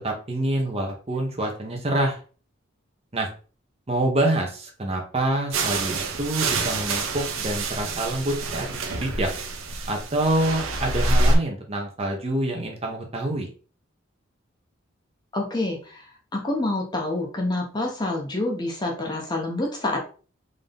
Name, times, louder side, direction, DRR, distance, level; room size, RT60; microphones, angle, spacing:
voice 1, 0.0-2.2 3.1-3.3 3.9-9.3 9.9-13.5, right 1 dB, 30° right, 2 dB, 0.7 m, -26 dB
sound 1, 5.5-11.4, right 2 dB, 85° right, 0.7 m, -26 dB
voice 2, 15.3-16.1 16.3-20.0, left 2 dB, 20° left, 0 dB, 0.7 m, -27 dB
3.8 x 2.7 x 3.4 m, 0.38 s
head